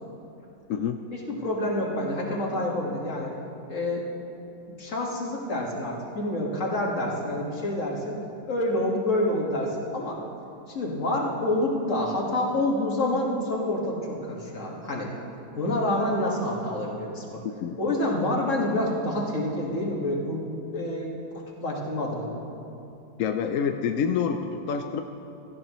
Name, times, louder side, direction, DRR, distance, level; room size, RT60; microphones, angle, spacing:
voice 1, 0.7-1.0 17.6-17.8 23.2-25.0, left 7 dB, 65° left, 6 dB, 0.8 m, -27 dB
voice 2, 1.3-3.3 3.7-4.1 4.8-8.2 8.5-10.2 10.7-15.1 15.6-17.4 17.8-20.5 20.7-21.2 21.6-22.3, left 1 dB, 45° left, -2 dB, 2.1 m, -27 dB
17.0 x 14.5 x 3.1 m, 2.8 s
omnidirectional pair, 1.8 m